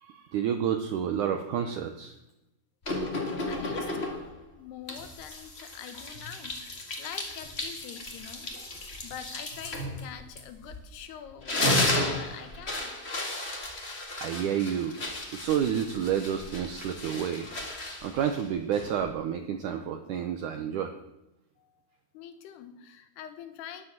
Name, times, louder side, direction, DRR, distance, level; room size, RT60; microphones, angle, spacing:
voice 1, 0.0-2.2 14.2-15.0 15.3-17.5 18.0-20.9, right 8 dB, 90° right, 7 dB, 1.8 m, -29 dB
sound 1, 2.8-4.4 4.9-10.9 11.3-19.1, left 1 dB, 40° left, 0.8 m, -33 dB
voice 2, 3.2-13.0 21.6-21.7 22.1-23.8, left 9 dB, 80° left, 9 dB, 3.1 m, -45 dB
12.0 x 10.5 x 7.5 m, 0.92 s
omnidirectional pair, 4.7 m